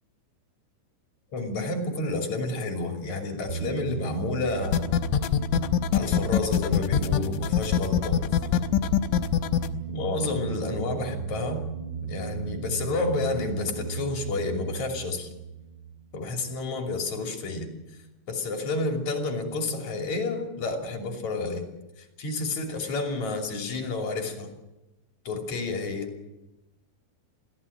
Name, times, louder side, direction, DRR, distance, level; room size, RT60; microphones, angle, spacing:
voice 1, 1.3-4.9 5.9-8.2 9.9-11.6 12.0-15.3 16.1-17.7 18.3-21.6 22.2-24.5 25.3-26.1, left 3 dB, 40° left, 2 dB, 3.7 m, -30 dB
sound 1, 3.5-16.7, right 7 dB, 25° right, 0.9 m, -36 dB
sound 2, 4.6-9.7, left 10 dB, 80° left, 3.3 m, -23 dB
21.5 x 16.5 x 8.7 m, 1.0 s
omnidirectional pair, 5.6 m